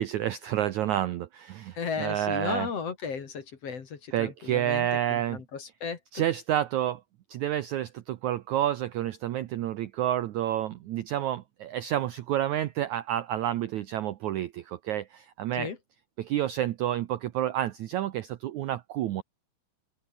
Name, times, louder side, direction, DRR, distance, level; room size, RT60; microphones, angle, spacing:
voice 1, 0.0-2.7 4.1-5.4 6.1-7.0 7.3-15.7 16.2-19.2, right 12 dB, 85° right, 1.7 m, -29 dB
voice 2, 1.7-6.2 15.5-15.8, left 6 dB, 45° left, 2.8 m, -35 dB
open air
omnidirectional pair, 4.6 m